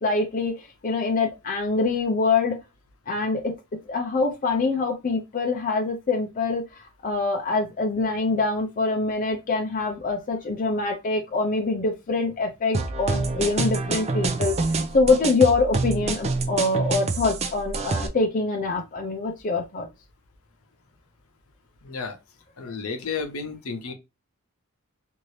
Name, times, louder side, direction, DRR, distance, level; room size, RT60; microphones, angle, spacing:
voice 1, 0.0-2.6 3.1-3.5 3.9-6.6 7.0-14.6 14.9-19.9 22.6-22.7, left 3 dB, 40° left, 0.5 m, -24 dB
sound 1, 12.7-18.1, right 3 dB, 30° right, 0.4 m, -27 dB
voice 2, 21.8-22.2 22.6-23.9, left 5 dB, 75° left, 0.8 m, -32 dB
2.7 x 2.6 x 3.1 m
head